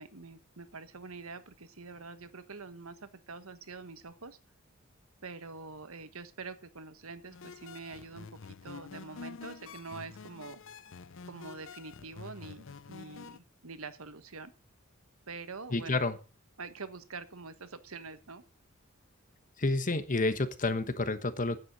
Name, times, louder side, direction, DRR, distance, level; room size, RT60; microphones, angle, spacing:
voice 1, 0.0-4.4 5.2-10.6 11.2-14.5 15.3-16.0 16.6-18.4, right 4 dB, 90° right, 11 dB, 1.4 m, -45 dB
sound 1, 7.3-13.4, left 5 dB, 65° left, 0.6 m, -48 dB
voice 2, 15.7-16.2 19.6-21.6, left 2 dB, 40° left, 11 dB, 1.3 m, -29 dB
9.6 x 7.9 x 8.9 m, 0.35 s
head